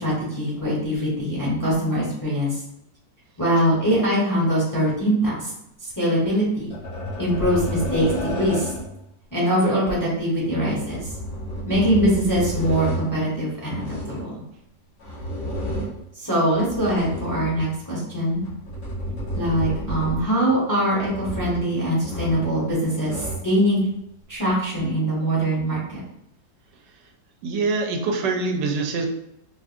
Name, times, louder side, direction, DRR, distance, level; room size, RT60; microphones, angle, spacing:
voice 1, 0.0-2.6 3.4-5.5 6.0-6.7 7.2-8.1 8.3-8.7 9.3-11.0 11.7-14.4 16.2-18.4 19.3-23.8 24.3-26.0, equal, 15° left, -6 dB, 0.8 m, -22 dB
sound 1, 6.7-9.0 10.6-13.1 13.6-14.3 15.0-16.0 16.5-17.8 18.4-20.4 21.0-21.7 22.0-22.6 22.8-23.5 24.4-24.5, equal, 80° left, 2.0 m, -31 dB
voice 2, 27.4-29.1, right 3 dB, 90° right, 3 dB, 1.3 m, -25 dB
4.5 x 2.5 x 2.5 m, 0.81 s
omnidirectional pair, 1.8 m